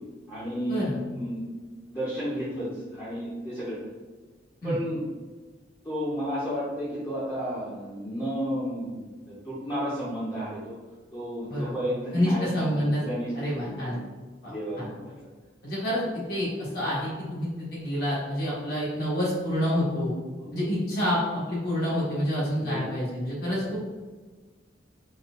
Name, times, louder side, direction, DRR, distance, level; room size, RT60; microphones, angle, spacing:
voice 1, 0.3-0.8 1.1-1.4 1.9-3.8 4.6-5.0 5.8-10.7 11.1-14.0 14.4-15.1 22.6-22.9 23.6-23.7, equal, 20° left, -11 dB, 0.7 m, -32 dB
voice 2, 12.1-13.1 13.3-14.0 14.4-14.9 15.6-16.0 16.3-20.1 20.5-23.8, equal, 55° left, -7 dB, 1.4 m, -28 dB
4.1 x 2.3 x 2.5 m, 1.4 s
head